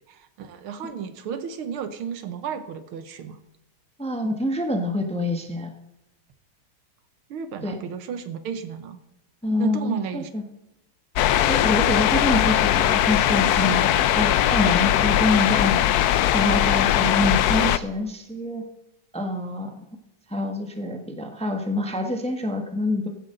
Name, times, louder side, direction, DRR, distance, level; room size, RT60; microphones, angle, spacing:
voice 1, 0.1-3.4 7.3-9.0 9.6-10.3, right 7 dB, 80° right, 10 dB, 1.9 m, -33 dB
voice 2, 4.0-5.7 7.6-7.8 9.4-10.4 11.4-15.9 16.2-18.6 19.1-19.7 20.3-23.1, left 1 dB, 5° left, 4 dB, 1.0 m, -26 dB
sound 1, 11.2-17.8, left 12 dB, 90° left, 0.8 m, -20 dB
15.5 x 11.0 x 3.9 m, 0.89 s
omnidirectional pair, 2.3 m